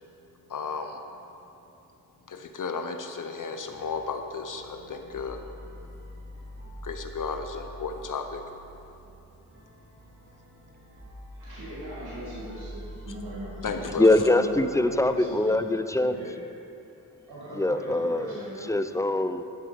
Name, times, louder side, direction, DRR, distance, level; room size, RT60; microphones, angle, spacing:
voice 1, 0.5-1.0 2.3-5.4 6.8-8.4 13.6-14.2, left 5 dB, 55° left, 5 dB, 0.8 m, -33 dB
sound 1, 3.6-15.4, equal, 30° right, 2.1 m, -45 dB
voice 2, 11.3-15.6 16.0-16.3 17.3-18.7, right 1 dB, 80° right, -9 dB, 2.5 m, -40 dB
voice 3, 14.0-16.2 17.6-18.4 18.7-19.4, left 2 dB, 10° left, 10 dB, 0.4 m, -23 dB
11.0 x 7.5 x 5.2 m, 2.9 s
cardioid pair, 60°, 37 cm